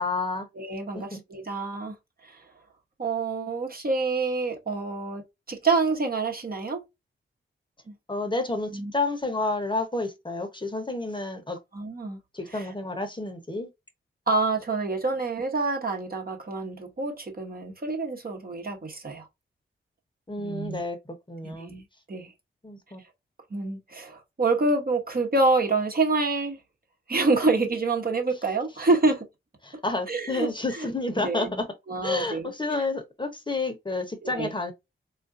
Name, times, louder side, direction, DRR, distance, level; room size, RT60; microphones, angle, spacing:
voice 1, 0.0-0.5 0.9-1.2 8.1-11.6 12.3-13.7 20.3-21.0 21.3-21.7 22.6-23.0 29.6-31.7 32.0-34.7, left 2 dB, 20° left, 0.9 m, -30 dB
voice 2, 0.5-2.0 2.2-2.4 3.0-5.2 5.5-6.8 7.9-8.0 8.7-8.9 11.7-12.2 12.5-12.7 14.3-19.3 20.4-20.8 21.4-22.3 23.5-26.6 27.1-29.3 30.1-32.5 34.2-34.5, right 3 dB, 45° right, 1.0 m, -27 dB
3.5 x 2.5 x 2.5 m
cardioid pair, 55°, 21 cm